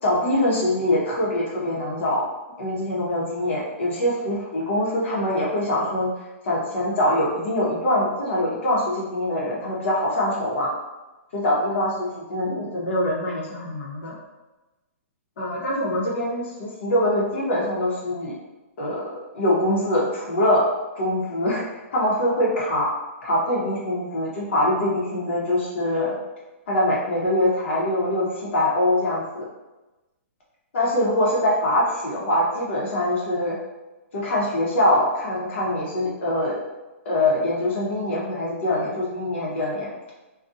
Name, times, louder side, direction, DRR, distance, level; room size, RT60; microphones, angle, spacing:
voice 1, 0.0-2.2 2.6-6.1 6.4-10.7 11.3-14.1 15.4-18.4 18.8-20.6 21.0-21.6 21.9-22.9 23.2-26.2 26.7-29.5 30.7-33.6 34.1-36.6 37.0-39.9, left 1 dB, 60° left, -5 dB, 0.9 m, -23 dB
2.4 x 2.3 x 2.6 m, 1.1 s
hypercardioid pair, 160°, 7 cm